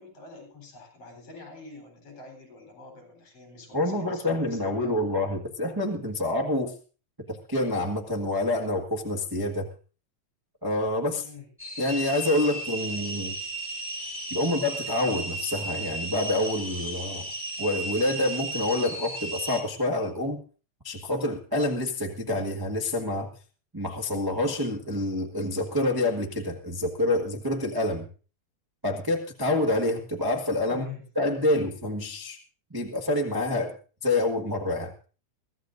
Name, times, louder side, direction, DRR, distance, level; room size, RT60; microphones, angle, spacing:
voice 1, 0.0-5.0 11.0-11.5 30.6-31.1, left 4 dB, 55° left, 2 dB, 4.9 m, -46 dB
voice 2, 3.7-6.7 7.3-9.7 10.6-11.2 11.8-13.4 14.3-17.2 17.6-20.4 20.8-23.3 23.7-28.1 28.8-30.9 31.1-32.4 32.7-33.7 34.0-34.9, left 1 dB, 30° right, 0 dB, 0.4 m, -27 dB
sound 1, 11.6-19.6, right 2 dB, 5° right, 2.2 m, -35 dB
23.0 x 15.0 x 2.6 m, 0.37 s
omnidirectional pair, 3.4 m